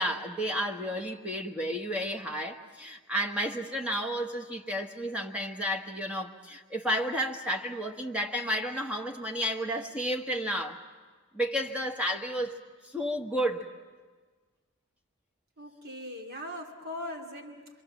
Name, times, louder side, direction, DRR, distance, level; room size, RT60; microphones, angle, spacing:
voice 1, 0.0-10.8 11.3-13.7, equal, 5° right, 1 dB, 1.4 m, -32 dB
voice 2, 15.6-17.7, left 1 dB, 45° right, 1 dB, 2.4 m, -40 dB
27.0 x 25.5 x 7.3 m, 1.4 s
head